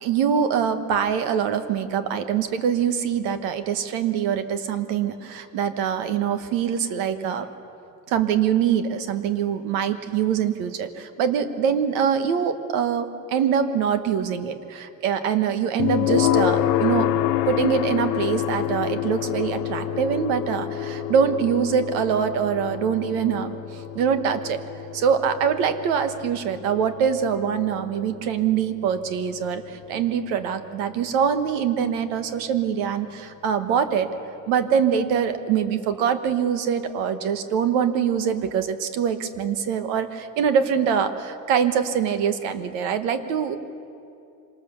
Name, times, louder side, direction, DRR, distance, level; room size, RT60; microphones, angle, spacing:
voice 1, 0.0-7.5 8.1-17.1 17.5-24.6 24.9-34.1 34.5-43.6, right 7 dB, 90° right, 9 dB, 1.4 m, -24 dB
sound 1, 15.8-30.7, left 11 dB, 75° left, 1.1 m, -28 dB
25.5 x 19.0 x 6.9 m, 2.7 s
supercardioid pair, 95°, 35 cm